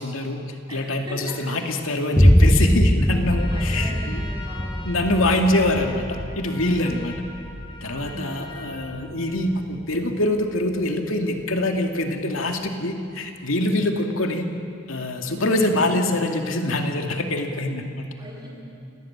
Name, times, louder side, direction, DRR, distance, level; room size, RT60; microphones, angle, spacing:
voice 1, 0.0-4.2 4.8-6.1 6.4-7.1 7.8-14.5 14.9-18.1, left 1 dB, 80° left, 4 dB, 2.3 m, -24 dB
voice 2, 0.7-1.4 2.5-2.6 3.5-4.9 6.6-7.0 7.9-8.5 15.2-15.6 18.2-18.5, right 1 dB, 20° right, -3 dB, 7.9 m, -40 dB
Boom, 2.2-10.0, equal, 5° left, 0.5 m, -22 dB
Trumpet, 3.2-9.7, left 2 dB, 25° left, 3.3 m, -42 dB
28.0 x 18.5 x 8.8 m, 2.6 s
head